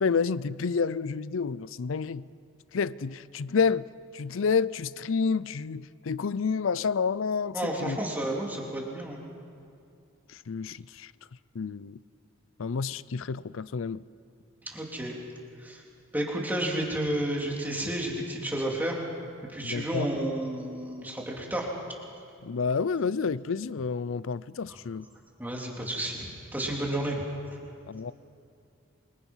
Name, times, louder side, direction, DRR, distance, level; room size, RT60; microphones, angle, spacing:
voice 1, 0.0-2.3 2.7-8.0 10.3-11.1 11.5-12.0 12.6-14.0 19.6-20.1 22.4-25.1 27.9-28.1, left 5 dB, 70° left, 0.5 m, -29 dB
voice 2, 7.5-9.2 14.6-15.2 15.6-15.8 16.1-19.0 19.5-21.7 24.7-24.8 25.4-27.2, right 1 dB, 10° right, 3.4 m, -31 dB
27.5 x 25.0 x 5.7 m
head